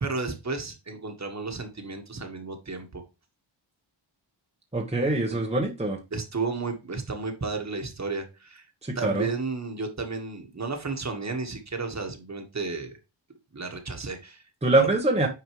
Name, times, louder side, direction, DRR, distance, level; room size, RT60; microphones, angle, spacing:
voice 1, 0.0-3.0 5.3-5.4 6.1-8.7 9.0-12.9 13.5-14.5 14.8-14.9, right 4 dB, 35° right, 1.7 m, -33 dB
voice 2, 4.7-6.0 8.8-9.3 14.6-15.3, right 2 dB, 15° right, 1.3 m, -24 dB
9.2 x 4.6 x 3.2 m
wide cardioid pair, 95°, 46 cm